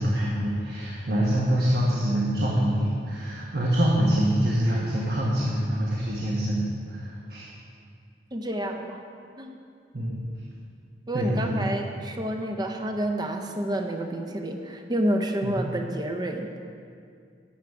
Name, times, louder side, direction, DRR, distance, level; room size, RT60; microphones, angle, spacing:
voice 1, 0.0-7.5 9.9-10.2 11.1-11.7 15.4-15.6, equal, 60° right, -4 dB, 1.3 m, -25 dB
voice 2, 8.3-9.0 9.4-9.6 11.1-16.5, right 1 dB, 25° right, 4 dB, 0.6 m, -29 dB
12.0 x 8.2 x 4.8 m, 2.3 s
head